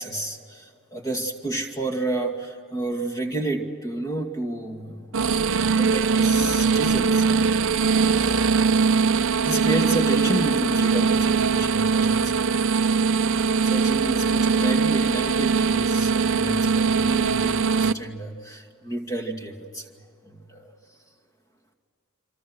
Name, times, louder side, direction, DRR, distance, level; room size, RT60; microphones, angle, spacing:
voice 1, 0.0-5.4 5.7-8.6 9.1-12.9 13.6-20.7, right 2 dB, 15° left, 3 dB, 2.4 m, -31 dB
sound 1, 5.1-17.9, right 5 dB, 60° right, 0.6 m, -21 dB
26.5 x 26.5 x 6.3 m, 2.2 s
head